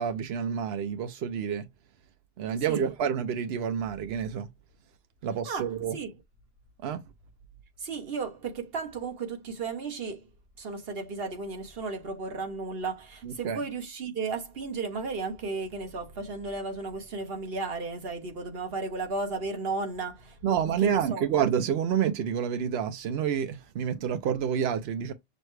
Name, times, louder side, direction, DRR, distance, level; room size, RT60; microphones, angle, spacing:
voice 1, 0.0-1.6 2.4-4.5 5.2-6.0 6.8-7.0 13.2-13.6 20.4-25.1, right 8 dB, 85° right, 0.8 m, -28 dB
voice 2, 7.8-10.2 10.6-21.3, right 3 dB, 70° right, 1.3 m, -34 dB
6.3 x 2.1 x 3.1 m
omnidirectional pair, 1.0 m